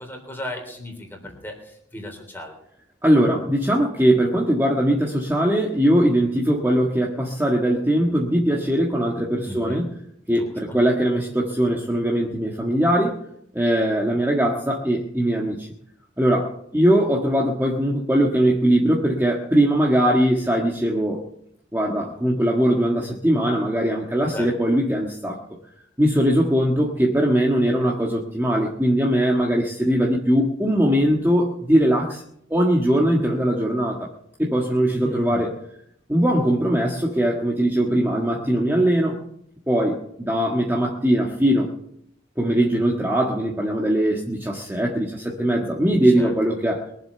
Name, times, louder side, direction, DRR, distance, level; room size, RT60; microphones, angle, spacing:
voice 1, 0.0-2.5 9.4-9.8 10.3-10.8 24.3-24.5 34.9-35.5 46.0-46.3, left 1 dB, 10° left, 2 dB, 3.6 m, -35 dB
voice 2, 3.0-9.9 10.3-13.2 13.5-15.7 16.2-21.2 21.7-25.4 26.0-32.2 32.5-34.1 34.4-35.5 36.1-39.2 39.7-41.7 42.4-46.9, right 1 dB, 10° right, -2 dB, 1.6 m, -20 dB
23.0 x 7.7 x 6.8 m, 0.72 s
head